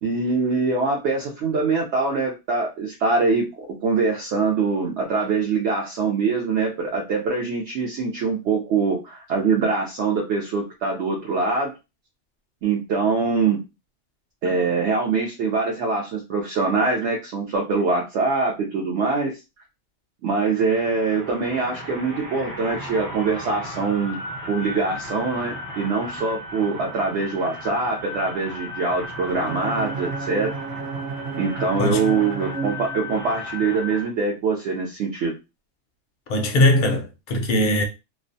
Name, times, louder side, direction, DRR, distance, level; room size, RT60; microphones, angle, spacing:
voice 1, 0.0-11.7 12.6-13.6 14.4-19.4 20.2-24.2 24.5-30.5 31.4-35.3, right 4 dB, 70° right, 0.8 m, -23 dB
sound 1, 20.4-34.1, left 1 dB, 40° right, 0.9 m, -36 dB
Bowed string instrument, 29.2-33.4, right 4 dB, 90° right, 0.3 m, -32 dB
voice 2, 31.8-32.1 36.3-37.8, left 1 dB, 55° left, 0.6 m, -20 dB
2.4 x 2.1 x 2.6 m
omnidirectional pair, 1.2 m